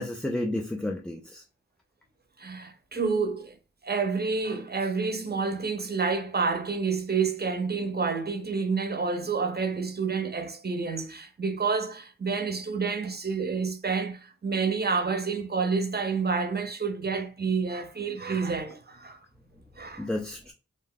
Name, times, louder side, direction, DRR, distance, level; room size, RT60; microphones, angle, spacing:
voice 1, 0.0-1.4 20.0-20.5, left 1 dB, 5° left, 0.3 m, -31 dB
voice 2, 2.4-3.6 3.8-19.2 19.8-20.1, right 5 dB, 30° right, 0.6 m, -29 dB
2.7 x 2.1 x 3.6 m
wide cardioid pair, 50°, 32 cm